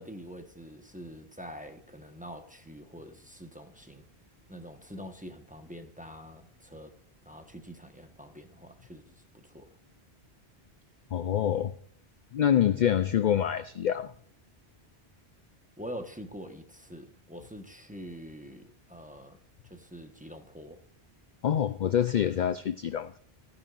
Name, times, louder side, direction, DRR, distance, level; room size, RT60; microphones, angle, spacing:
voice 1, 0.0-4.0 4.5-6.9 7.2-9.7 15.8-19.4 19.6-20.8, equal, 10° right, 1.1 m, -45 dB
voice 2, 11.1-11.8 12.3-14.1 21.4-23.2, left 9 dB, 55° left, 0.5 m, -26 dB
15.5 x 10.5 x 2.5 m
omnidirectional pair, 1.1 m